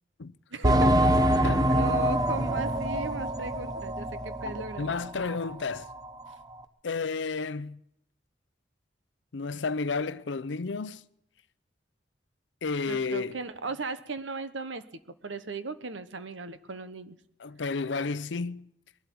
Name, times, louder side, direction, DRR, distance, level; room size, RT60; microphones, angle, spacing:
voice 1, 0.5-4.9 12.9-14.8 15.2-17.2, right 3 dB, 90° right, 1.1 m, -36 dB
sound 1, 0.6-4.9 5.2-5.3 5.9-6.0, right 1 dB, 20° right, 0.8 m, -25 dB
voice 2, 1.4-1.8 4.4-5.9 6.8-7.8 9.3-11.0 12.6-13.4 17.4-18.7, left 4 dB, 75° left, 0.6 m, -32 dB
21.5 x 12.0 x 4.6 m
head